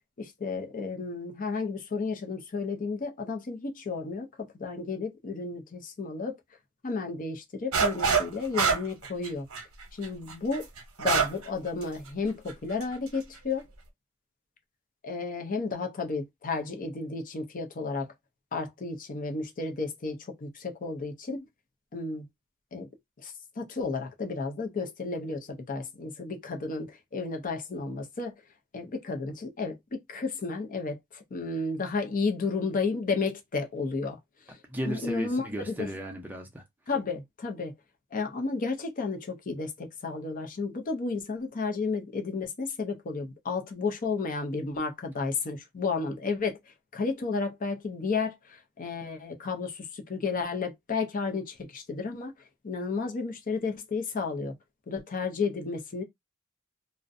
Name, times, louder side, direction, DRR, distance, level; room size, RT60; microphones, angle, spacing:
voice 1, 0.2-6.4 6.8-9.5 9.9-10.7 11.0-13.6 15.0-18.1 18.5-21.5 21.9-22.3 22.7-22.9 23.2-28.4 28.7-34.2 34.5-34.6 34.9-35.9 36.9-37.7 38.1-54.5 54.9-56.0, left 4 dB, 40° left, 0.5 m, -32 dB
sound 1, 7.7-8.3 8.5-11.5 11.8-11.9 12.5-12.8, right 5 dB, 75° right, 0.7 m, -25 dB
voice 2, 34.7-36.6, equal, 10° right, 0.5 m, -35 dB
2.5 x 2.1 x 2.5 m
head